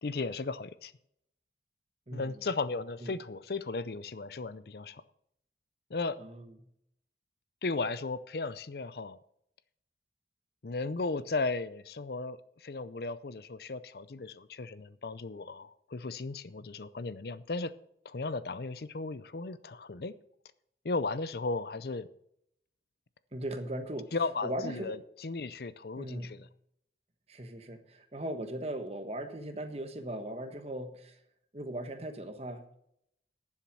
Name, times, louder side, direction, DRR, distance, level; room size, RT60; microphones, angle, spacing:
voice 1, 0.0-0.9 2.1-5.0 5.9-6.2 7.6-9.2 10.6-17.7 18.0-20.1 20.8-22.1 24.1-26.5, left 3 dB, 60° left, 16 dB, 0.6 m, -35 dB
voice 2, 2.1-2.4 3.0-3.2 6.2-6.5 23.3-24.1 24.4-25.0 26.0-26.4 27.3-31.2 31.5-32.7, right 1 dB, 35° right, 8 dB, 1.2 m, -38 dB
11.0 x 7.4 x 6.2 m, 0.72 s
head